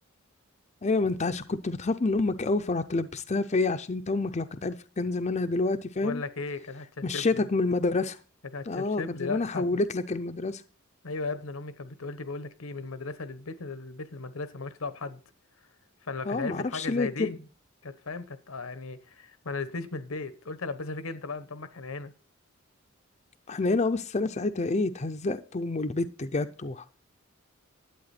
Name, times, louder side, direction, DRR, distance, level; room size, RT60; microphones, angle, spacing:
voice 1, 0.8-6.2 7.0-8.2 8.7-10.6 16.2-17.4 23.5-26.9, left 3 dB, 35° left, 0.5 m, -28 dB
voice 2, 6.0-7.5 8.5-9.7 11.0-15.2 16.0-17.3 17.8-22.1, left 3 dB, 85° left, 1.0 m, -36 dB
11.5 x 8.6 x 4.2 m
head